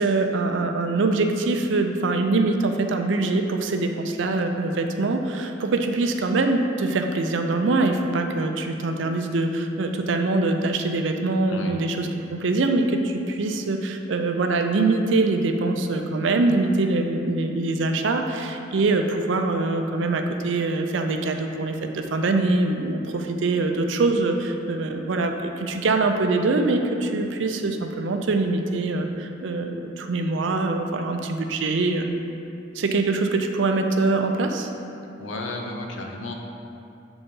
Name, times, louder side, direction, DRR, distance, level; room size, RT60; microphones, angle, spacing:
voice 1, 0.0-32.1 32.7-34.7, right 3 dB, 75° right, 5 dB, 0.5 m, -23 dB
voice 2, 11.5-11.8 35.2-36.3, left 2 dB, 90° left, 1 dB, 0.7 m, -33 dB
6.9 x 4.0 x 3.7 m, 2.7 s
head